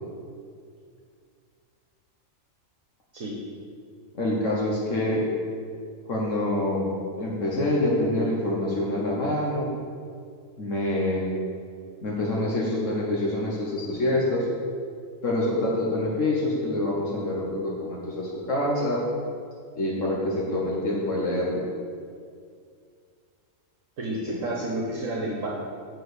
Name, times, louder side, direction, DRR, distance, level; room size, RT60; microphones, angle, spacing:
voice 1, 4.1-5.3 6.1-6.8 7.2-9.7 10.6-11.3 12.0-14.5 15.2-19.0 19.8-21.6 24.1-24.4, left 1 dB, 65° left, -4 dB, 1.4 m, -26 dB
voice 2, 24.0-25.5, right 1 dB, 70° right, -4 dB, 1.4 m, -30 dB
6.6 x 4.6 x 6.6 m, 2.2 s
omnidirectional pair, 1.4 m